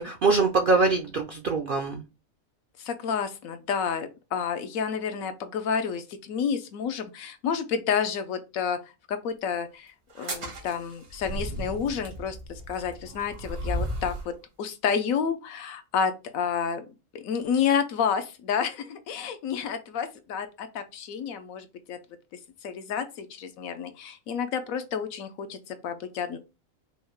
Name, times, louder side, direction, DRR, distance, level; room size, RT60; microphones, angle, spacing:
voice 1, 0.0-2.0, right 3 dB, 65° right, 3 dB, 0.5 m, -23 dB
voice 2, 2.8-8.8 9.1-9.9 10.2-14.1 14.6-16.8 17.1-22.0 22.6-26.4, left 7 dB, 80° left, 8 dB, 1.1 m, -30 dB
sound 1, 10.1-14.3, right 1 dB, 85° right, 1.8 m, -35 dB
5.4 x 2.1 x 3.0 m, 0.28 s
omnidirectional pair, 1.4 m